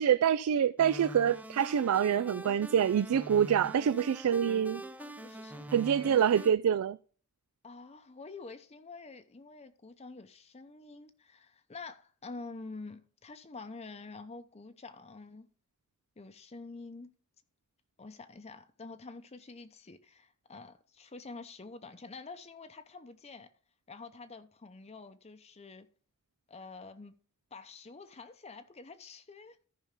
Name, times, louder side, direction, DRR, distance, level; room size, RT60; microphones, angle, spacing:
voice 1, 0.0-4.8 5.7-7.0, right 8 dB, 90° right, 0.3 m, -26 dB
sound 1, 0.8-6.5, right 1 dB, 5° right, 0.5 m, -44 dB
voice 2, 5.0-5.9 7.6-15.5 16.2-17.1 18.0-23.5 23.9-25.9 26.5-27.2 27.5-29.7, left 3 dB, 30° left, 0.7 m, -48 dB
14.0 x 5.5 x 3.6 m
head